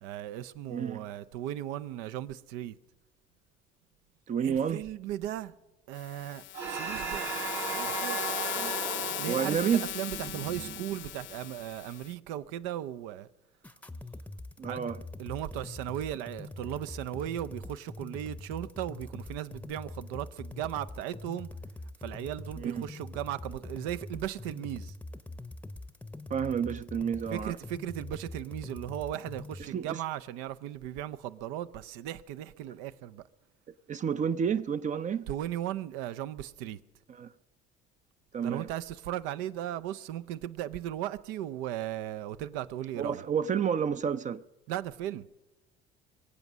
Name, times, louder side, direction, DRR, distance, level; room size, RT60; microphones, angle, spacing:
voice 1, 0.0-2.8 4.4-5.5 5.9-8.3 9.2-13.3 14.7-14.8 15.2-21.5 22.0-24.9 27.3-33.2 35.3-36.8 38.4-43.2 44.7-45.3, right 12 dB, 80° right, 0.6 m, -37 dB
voice 2, 0.7-1.0 4.3-4.8 8.6-8.8 9.3-9.9 14.6-15.0 22.6-22.8 26.3-27.6 29.7-30.0 33.9-35.3 37.2-37.3 38.3-38.7 43.0-44.4, right 7 dB, 35° right, 0.5 m, -30 dB
sound 1, 6.0-12.1, left 15 dB, 65° left, 0.6 m, -38 dB
sound 2, 6.5-11.3, right 5 dB, 60° right, 1.7 m, -37 dB
sound 3, 13.6-29.6, left 2 dB, 5° left, 0.7 m, -43 dB
22.5 x 8.2 x 6.1 m
supercardioid pair, 75°, 21 cm